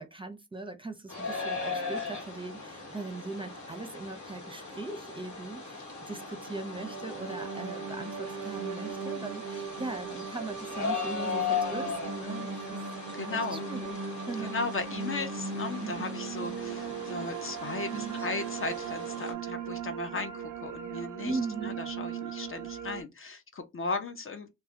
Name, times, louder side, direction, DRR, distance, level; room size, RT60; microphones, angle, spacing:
voice 1, 0.0-12.8 13.1-14.0 14.3-14.6 15.8-16.1 17.9-18.2 21.2-21.7, right 3 dB, 15° right, 0.6 m, -40 dB
sound 1, 1.1-19.3, left 5 dB, 70° left, 1.0 m, -38 dB
sound 2, 6.1-23.0, right 6 dB, 85° right, 0.4 m, -38 dB
voice 2, 13.1-13.6 14.5-24.5, left 3 dB, 45° left, 0.5 m, -36 dB
2.2 x 2.1 x 2.8 m
cardioid pair, 50°, 30 cm